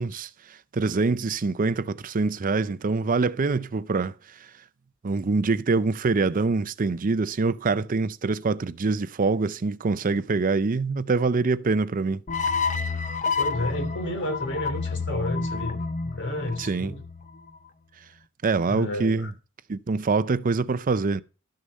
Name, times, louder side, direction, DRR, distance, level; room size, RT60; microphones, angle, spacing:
voice 1, 0.0-4.4 5.0-12.2 16.6-16.9 18.4-19.3 19.7-21.2, right 4 dB, 40° right, 0.5 m, -25 dB
sound 1, 12.3-17.5, left 4 dB, 35° left, 0.7 m, -29 dB
voice 2, 13.4-17.0 18.7-19.3, left 1 dB, 55° left, 3.0 m, -31 dB
12.5 x 6.6 x 5.4 m
head